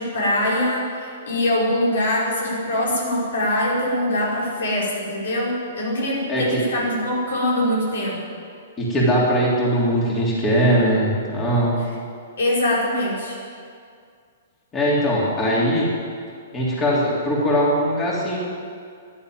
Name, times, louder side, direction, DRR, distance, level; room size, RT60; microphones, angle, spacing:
voice 1, 0.0-8.2 12.4-13.4, left 1 dB, 75° left, -4 dB, 4.8 m, -23 dB
voice 2, 6.3-6.6 8.8-11.8 14.7-15.9 16.5-18.4, equal, 20° left, -5 dB, 3.5 m, -20 dB
11.0 x 11.0 x 9.4 m, 2.2 s
hypercardioid pair, 140°, 0 cm